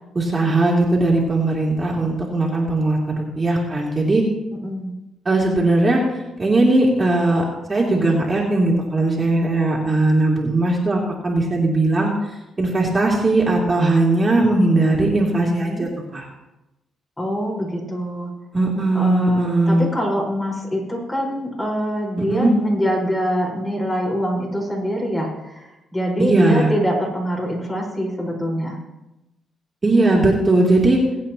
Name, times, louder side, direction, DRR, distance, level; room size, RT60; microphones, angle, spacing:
voice 1, 0.1-4.2 5.2-6.0 6.4-12.1 12.6-16.3 18.5-19.9 22.2-22.5 26.2-26.7 29.8-31.0, right 2 dB, 25° right, -3 dB, 2.9 m, -19 dB
voice 2, 4.6-4.9 15.6-15.9 17.2-18.3 18.9-28.8, equal, 20° left, -2 dB, 4.6 m, -24 dB
22.5 x 8.4 x 2.9 m, 0.96 s
cardioid pair, 90°, 0 cm